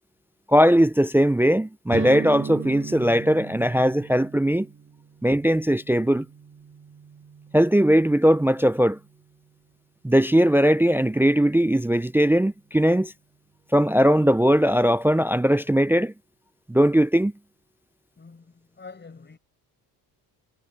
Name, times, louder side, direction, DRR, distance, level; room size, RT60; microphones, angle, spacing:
voice 1, 0.5-4.7 5.2-6.3 7.5-9.0 10.0-13.1 13.7-16.1 16.7-17.3, equal, 5° right, 0.4 m, -19 dB
sound 1, 1.9-9.5, right 6 dB, 30° right, 2.2 m, -38 dB
voice 2, 18.2-19.4, left 4 dB, 25° left, 5.8 m, -46 dB
cardioid pair, 95°, 39 cm